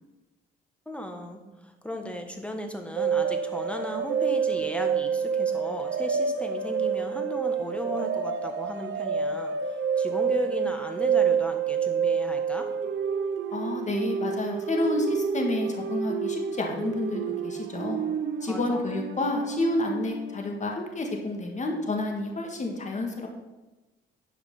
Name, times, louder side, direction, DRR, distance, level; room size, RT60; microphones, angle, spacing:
voice 1, 0.9-9.5 10.0-12.7 18.5-18.8, left 1 dB, 5° left, 4 dB, 1.4 m, -36 dB
sound 1, 3.0-20.4, right 6 dB, 70° right, 0.8 m, -28 dB
voice 2, 13.5-18.0 18.4-23.3, left 2 dB, 35° left, 2 dB, 1.9 m, -29 dB
11.0 x 5.1 x 5.4 m, 1.1 s
cardioid pair, 90°, 20 cm